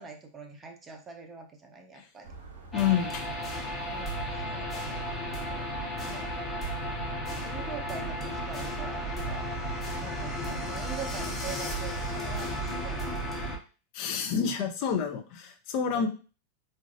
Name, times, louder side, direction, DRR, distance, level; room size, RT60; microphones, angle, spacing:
voice 1, 0.0-2.3 3.9-5.7 6.0-6.3 7.4-9.5 10.0-13.2 15.9-16.1, right 5 dB, 20° right, 4 dB, 0.6 m, -44 dB
sound 1, 2.2-13.3, right 3 dB, 60° right, 0.7 m, -46 dB
voice 2, 2.7-3.3 13.9-16.1, left 7 dB, 45° left, 5 dB, 0.5 m, -28 dB
sound 2, 2.7-13.6, equal, 15° left, 0.7 m, -34 dB
3.9 x 2.4 x 2.5 m, 0.35 s
figure-of-eight pair, 90°, 0 cm